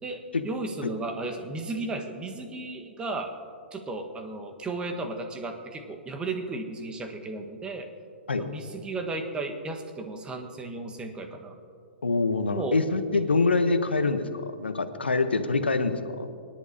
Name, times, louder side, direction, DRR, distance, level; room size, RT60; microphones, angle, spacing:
voice 1, 0.0-3.3 3.7-7.9 8.4-11.5 12.5-12.8, right 2 dB, 15° right, 4 dB, 1.3 m, -34 dB
voice 2, 12.0-16.3, left 3 dB, 85° left, 9 dB, 0.8 m, -25 dB
23.5 x 10.5 x 2.8 m, 2.3 s
figure-of-eight pair, 115°, 6 cm